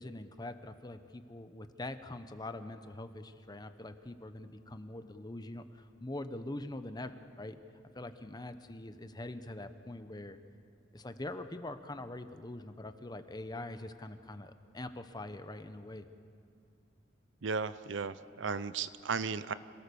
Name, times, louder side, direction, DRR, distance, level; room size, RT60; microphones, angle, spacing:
voice 1, 0.0-7.6 7.9-10.4 10.9-16.1, left 1 dB, 20° left, 10 dB, 0.9 m, -43 dB
voice 2, 17.4-19.5, right 5 dB, 65° right, 15 dB, 0.6 m, -35 dB
27.0 x 18.0 x 7.0 m, 2.5 s
head